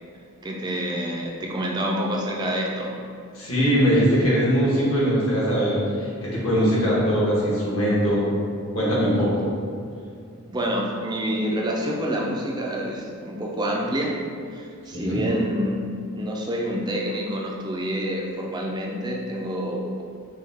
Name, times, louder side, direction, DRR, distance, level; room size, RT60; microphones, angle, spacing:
voice 1, 0.4-2.9 10.5-14.2 14.5-20.0, equal, 20° right, -1 dB, 0.4 m, -27 dB
voice 2, 3.3-8.3 8.7-9.4 14.9-15.2, equal, 70° left, -7 dB, 1.3 m, -21 dB
5.4 x 2.2 x 3.5 m, 2.3 s
head